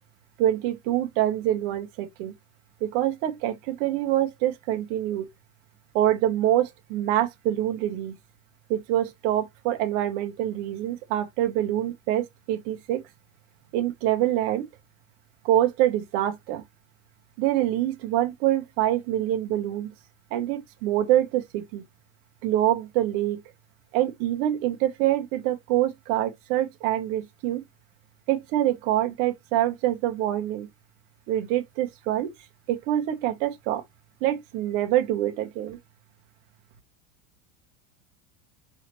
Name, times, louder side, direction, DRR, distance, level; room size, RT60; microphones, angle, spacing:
voice 1, 0.4-2.3 2.8-5.3 5.9-8.1 8.7-13.0 13.7-14.7 15.4-16.6 17.4-19.9 20.3-21.8 22.4-23.4 23.9-27.6 28.3-30.7 31.3-32.3 32.7-33.8 34.2-35.8, right 12 dB, 25° right, 0.4 m, -25 dB
4.9 x 3.2 x 2.8 m
supercardioid pair, 180°, 41 cm